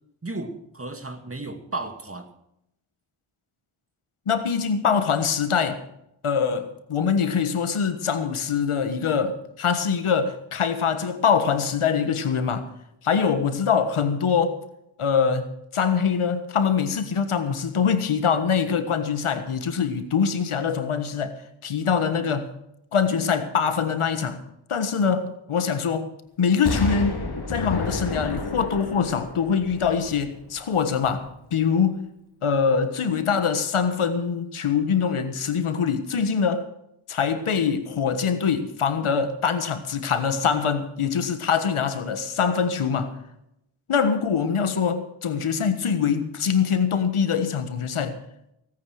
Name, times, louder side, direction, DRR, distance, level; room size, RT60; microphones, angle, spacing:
voice 1, 0.2-2.3 6.5-6.6, right 2 dB, 25° right, 2.2 m, -34 dB
voice 2, 4.3-5.8 6.2-12.7 13.0-14.6 15.0-21.4 21.6-22.5 22.9-24.4 24.7-26.1 26.4-27.2 27.5-31.2 31.5-32.1 32.4-36.7 37.1-43.1 43.9-48.2, left 6 dB, 80° left, 1.5 m, -24 dB
Explosion, 26.7-30.6 31.0-31.1, left 3 dB, 50° left, 3.0 m, -30 dB
17.5 x 9.3 x 6.4 m
cardioid pair, 45°, 49 cm